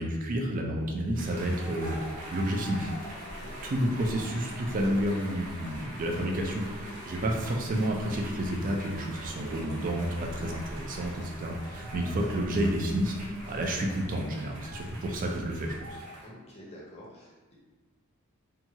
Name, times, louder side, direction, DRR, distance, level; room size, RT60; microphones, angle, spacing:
voice 1, 0.0-2.0 2.3-2.9 3.6-16.0, right 1 dB, 35° right, 1 dB, 0.3 m, -30 dB
Insect, 0.8-15.9, equal, 70° left, 0.9 m, -46 dB
sound 1, 1.1-16.3, right 1 dB, 85° right, 0.6 m, -45 dB
sound 2, 2.0-11.2, equal, 20° right, 0.7 m, -48 dB
voice 2, 3.3-3.7 10.2-10.5 16.2-17.5, equal, 30° left, -4 dB, 0.6 m, -50 dB
2.8 x 2.3 x 2.7 m, 1.2 s
head